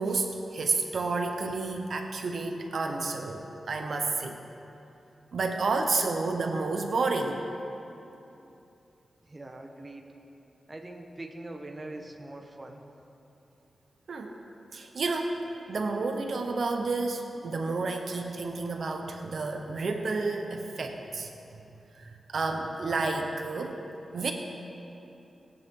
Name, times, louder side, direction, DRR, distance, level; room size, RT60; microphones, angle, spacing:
voice 1, 0.0-4.4 5.3-7.4 14.1-14.3 14.7-15.4 15.7-21.3 22.0-23.8 24.1-24.3, right 3 dB, 65° right, 4 dB, 0.9 m, -30 dB
voice 2, 9.2-10.0 10.7-12.8, right 2 dB, 25° right, 3 dB, 1.0 m, -42 dB
20.0 x 9.4 x 3.8 m, 2.9 s
wide cardioid pair, 115°, 0 cm